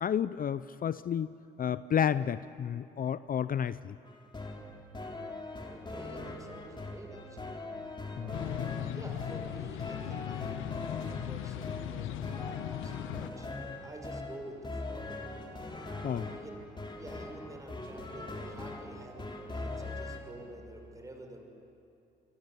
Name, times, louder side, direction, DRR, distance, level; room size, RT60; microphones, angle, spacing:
voice 1, 0.0-1.3 1.6-4.0 8.2-8.3 16.0-16.2, left 8 dB, 45° left, 15 dB, 0.5 m, -31 dB
sound 1, 4.1-20.2, left 2 dB, 25° left, 3.7 m, -41 dB
voice 2, 5.5-7.6 8.2-16.7 17.0-21.4, right 1 dB, 15° right, 2 dB, 6.0 m, -49 dB
sound 2, 8.3-13.3, left 13 dB, 90° left, 0.7 m, -38 dB
28.5 x 23.0 x 8.2 m, 2.6 s
cardioid pair, 90°, 20 cm